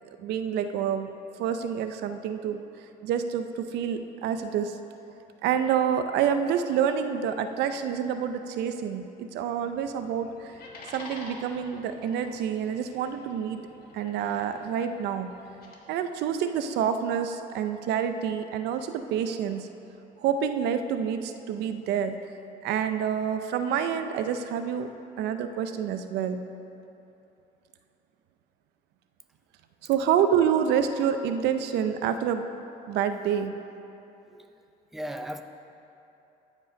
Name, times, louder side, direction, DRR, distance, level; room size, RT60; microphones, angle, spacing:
voice 1, 0.2-1.1 1.4-2.7 3.0-4.8 5.4-10.5 10.9-13.6 13.9-15.3 15.9-19.7 20.2-22.2 22.6-24.9 25.2-26.4 29.9-32.5 32.9-33.5, right 8 dB, 80° right, 9 dB, 0.5 m, -27 dB
sound 1, 9.4-15.8, left 2 dB, 65° left, 1.5 m, -48 dB
voice 2, 34.9-35.4, equal, ahead, 6 dB, 0.5 m, -36 dB
13.5 x 5.3 x 5.1 m, 2.9 s
cardioid pair, 110°, 17 cm